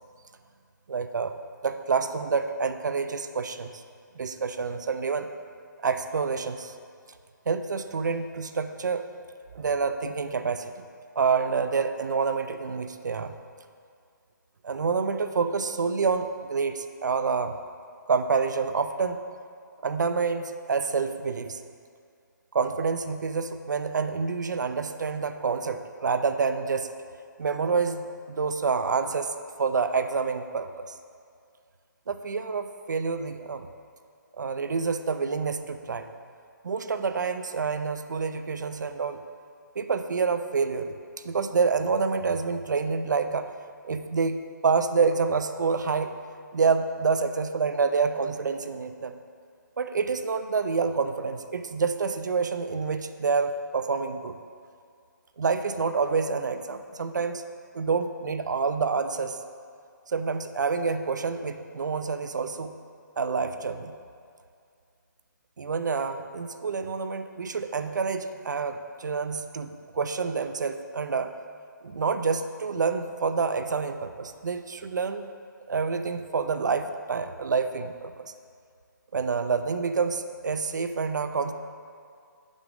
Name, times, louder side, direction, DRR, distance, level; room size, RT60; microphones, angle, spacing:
voice 1, 0.9-3.8 4.2-5.3 5.8-6.7 7.5-9.0 9.5-10.9 11.2-13.3 14.6-17.6 18.1-19.2 19.8-21.6 22.5-26.9 27.4-31.0 32.1-33.7 34.4-36.1 36.6-39.2 39.8-41.0 41.2-43.5 43.8-46.2 46.5-49.2 49.8-54.4 55.4-57.4 57.7-59.4 60.1-62.7 63.2-63.9 65.6-71.3 71.8-75.3 75.7-78.3 79.1-81.5, right 5 dB, 65° right, 9 dB, 0.5 m, -28 dB
7.3 x 5.3 x 5.0 m, 2.3 s
hypercardioid pair, 175°, 11 cm